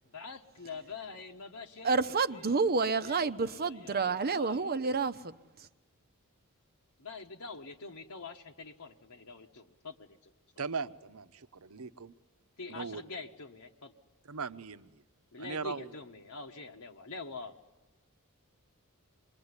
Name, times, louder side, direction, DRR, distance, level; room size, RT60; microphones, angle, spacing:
voice 1, 0.1-2.7 3.0-4.7 7.0-10.3 12.6-13.9 15.3-17.5, left 4 dB, 70° left, 1.4 m, -45 dB
voice 2, 1.8-5.7, right 4 dB, 45° right, 0.8 m, -29 dB
voice 3, 10.6-12.1 12.7-13.0 14.3-14.9 15.4-15.9, right 5 dB, 70° right, 0.9 m, -39 dB
26.5 x 22.0 x 9.7 m
head